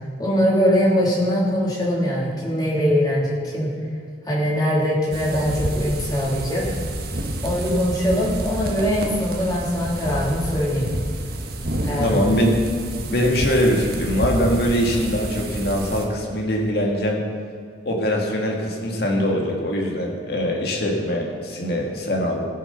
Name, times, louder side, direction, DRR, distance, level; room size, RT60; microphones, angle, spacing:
voice 1, 0.2-3.7 4.2-6.7 7.4-10.9 11.8-12.2, equal, 20° left, -6 dB, 2.9 m, -22 dB
sound 1, 5.1-16.1, right 1 dB, 55° right, 1.4 m, -29 dB
voice 2, 12.0-12.6 13.1-17.2 17.9-22.4, equal, 55° left, -1 dB, 2.0 m, -22 dB
16.5 x 6.8 x 5.7 m, 2.1 s
head